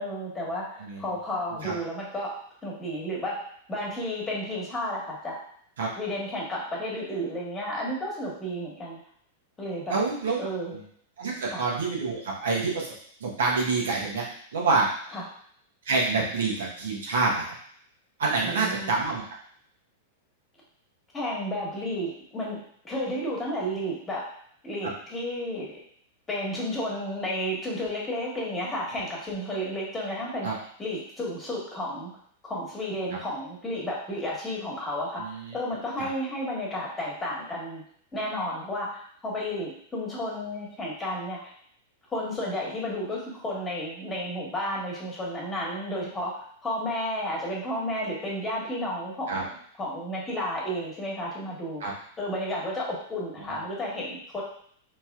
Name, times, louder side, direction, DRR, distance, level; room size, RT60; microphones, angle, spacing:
voice 1, 0.0-2.3 2.6-3.4 3.7-5.4 6.0-9.0 9.6-10.0 10.4-10.8 11.5-11.6 15.1-15.2 18.4-18.9 21.1-24.2 24.6-25.7 26.3-30.5 30.8-32.1 32.4-35.2 35.5-37.8 38.1-41.5 42.1-49.5 49.8-51.9 52.2-54.4, equal, 20° left, -4 dB, 1.6 m, -32 dB
voice 2, 9.9-10.4 10.7-10.8 11.2-12.9 13.2-14.2 14.5-14.9 15.8-17.5 18.2-19.2 30.4-30.5 33.1-33.2 35.2-35.6 36.0-36.1 49.3-49.4 51.8-51.9 53.4-53.6, right 3 dB, 75° right, -3 dB, 1.1 m, -27 dB
4.1 x 3.1 x 2.4 m, 0.62 s
hypercardioid pair, 105°, 0 cm